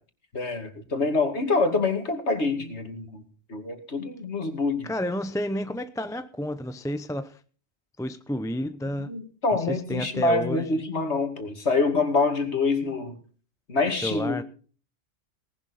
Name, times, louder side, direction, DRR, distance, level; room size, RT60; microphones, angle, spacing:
voice 1, 0.3-3.2 3.5-4.9 9.1-13.1 13.7-14.4, left 3 dB, 90° left, 6 dB, 2.6 m, -26 dB
voice 2, 4.8-7.4 8.0-9.1 9.5-10.6 14.0-14.4, equal, 5° left, 10 dB, 0.7 m, -30 dB
18.5 x 11.5 x 4.2 m, 0.41 s
omnidirectional pair, 1.1 m